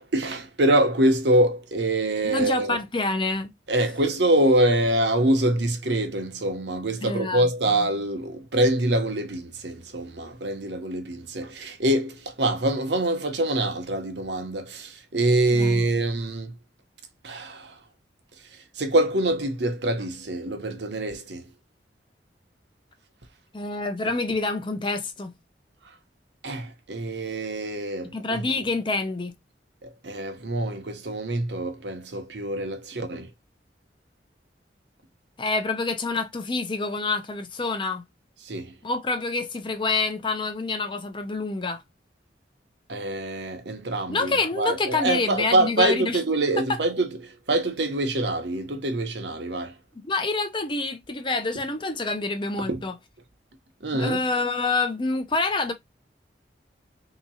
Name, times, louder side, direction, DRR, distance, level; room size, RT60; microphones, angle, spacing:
voice 1, 0.0-2.8 3.7-16.6 17.2-17.9 18.3-21.5 25.8-26.0 26.4-28.6 29.8-33.3 38.4-38.8 42.9-49.8 52.6-52.8 53.8-54.3, right 1 dB, 70° right, 0.9 m, -25 dB
voice 2, 2.2-3.5 7.0-7.4 15.5-15.8 23.5-25.3 28.1-29.3 35.4-38.0 38.8-41.8 44.1-46.2 50.0-52.9 53.9-55.7, left 3 dB, 25° left, 0.6 m, -27 dB
3.6 x 2.9 x 2.7 m
head